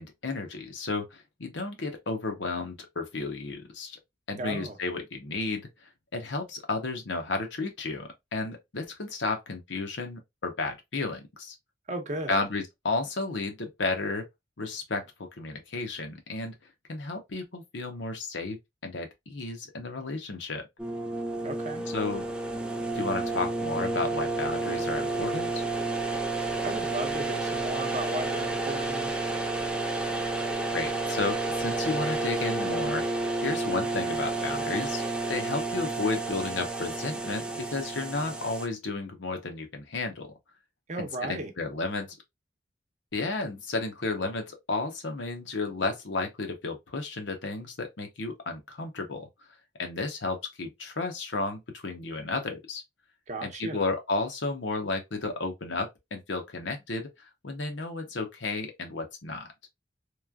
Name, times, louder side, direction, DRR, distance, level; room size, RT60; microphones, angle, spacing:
voice 1, 0.0-4.0 4.3-5.6 6.1-11.5 12.3-14.3 14.6-16.5 16.9-18.6 18.8-20.7 21.9-22.2 22.9-25.6 30.7-33.1 33.4-35.0 35.3-40.3 41.0-42.1 43.1-49.3 49.8-52.8 53.4-59.5, left 3 dB, 85° left, 0.8 m, -33 dB
voice 2, 4.4-4.8 11.9-12.4 21.4-21.9 26.6-29.1 40.9-41.5 53.3-53.9, right 2 dB, 40° right, 0.6 m, -35 dB
sound 1, 20.8-38.7, right 2 dB, 5° right, 0.3 m, -30 dB
3.1 x 2.3 x 2.3 m
head